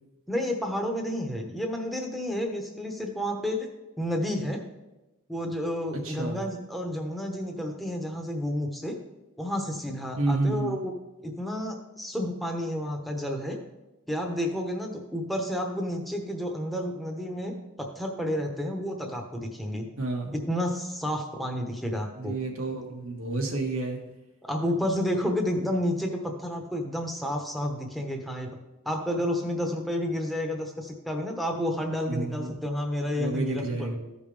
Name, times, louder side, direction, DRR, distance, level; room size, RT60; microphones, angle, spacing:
voice 1, 0.3-3.7 4.0-4.6 5.3-9.0 9.4-10.9 11.2-13.6 14.1-19.9 20.5-22.4 24.4-28.5 28.8-33.9, equal, ahead, 2 dB, 1.0 m, -30 dB
voice 2, 6.0-6.4 10.2-10.8 20.0-20.3 22.2-24.0 32.1-32.5 33.1-34.0, right 2 dB, 80° right, 1 dB, 1.6 m, -30 dB
14.5 x 5.2 x 3.4 m, 1.0 s
head